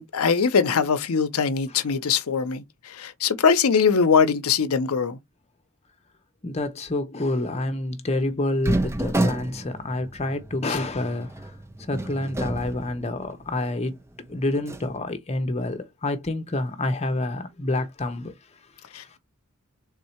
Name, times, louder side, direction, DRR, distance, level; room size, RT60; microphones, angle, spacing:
voice 1, 0.0-5.2 18.9-19.2, left 6 dB, 80° left, 0.6 m, -22 dB
voice 2, 6.4-11.5 11.8-14.0 14.3-18.3 18.9-19.2, left 2 dB, 30° left, 0.8 m, -28 dB
sound 1, 8.6-13.5 13.9-14.0 14.6-14.9, right 1 dB, 10° right, 0.5 m, -29 dB
3.7 x 2.7 x 4.3 m
head